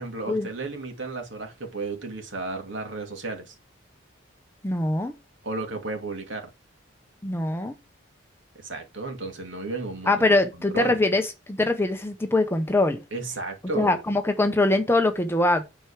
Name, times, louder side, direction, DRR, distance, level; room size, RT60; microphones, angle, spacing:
voice 1, 0.0-3.5 5.4-6.5 8.6-10.2 10.7-11.0 13.1-14.0, right 3 dB, 65° right, 2.6 m, -33 dB
voice 2, 4.6-5.1 7.2-7.7 10.1-13.0 13.7-15.6, left 2 dB, 10° left, 0.9 m, -23 dB
9.9 x 4.6 x 4.9 m
head